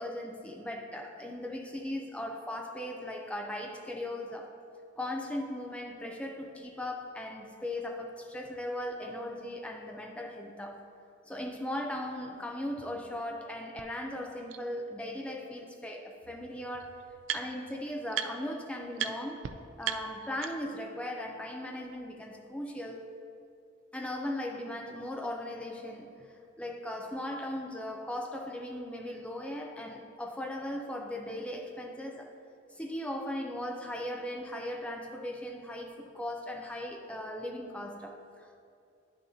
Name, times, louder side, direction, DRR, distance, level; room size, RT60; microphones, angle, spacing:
voice 1, 0.0-4.5 5.0-10.8 11.3-16.9 17.3-19.5 19.8-23.1 23.9-26.3 26.6-32.3 32.7-38.6, left 1 dB, 5° left, 2 dB, 0.5 m, -38 dB
sound 1, 13.8-13.9 14.5-14.6 15.9-16.0 16.2-17.7 18.1-18.6 18.9-19.1 19.4-19.5 19.8-20.8, right 9 dB, 75° right, 0.4 m, -37 dB
10.5 x 6.4 x 2.8 m, 2.6 s
head